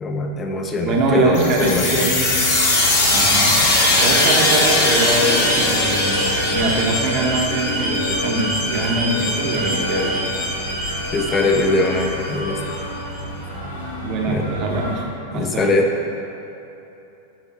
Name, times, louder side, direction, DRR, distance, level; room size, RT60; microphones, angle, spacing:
voice 1, 0.0-2.1 11.1-12.6 14.3-14.4 15.3-15.9, left 2 dB, 20° left, 2 dB, 0.4 m, -21 dB
voice 2, 0.8-2.3 3.1-3.6 4.0-10.2 14.0-15.0 15.3-15.7, right 2 dB, 40° right, 0 dB, 0.8 m, -23 dB
sound 1, 1.0-15.0, equal, 85° left, 1.2 m, -32 dB
sound 2, 1.3-12.7, left 2 dB, 55° left, 1.3 m, -20 dB
8.7 x 4.0 x 3.0 m, 2.9 s
figure-of-eight pair, 90°, 0 cm